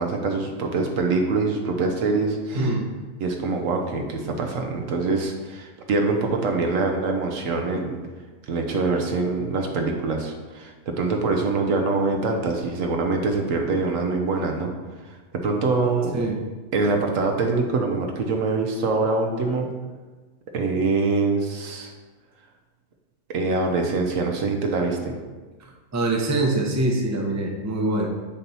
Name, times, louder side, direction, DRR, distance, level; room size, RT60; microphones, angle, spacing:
voice 1, 0.0-2.8 3.2-8.0 8.5-14.7 15.0-16.2 16.7-19.7 20.5-21.9 23.3-25.2, right 3 dB, 85° right, 2 dB, 1.2 m, -24 dB
voice 2, 2.6-2.9 16.1-16.4 25.9-28.1, right 2 dB, 20° right, 0 dB, 0.5 m, -24 dB
6.9 x 3.0 x 5.5 m, 1.3 s
omnidirectional pair, 1.3 m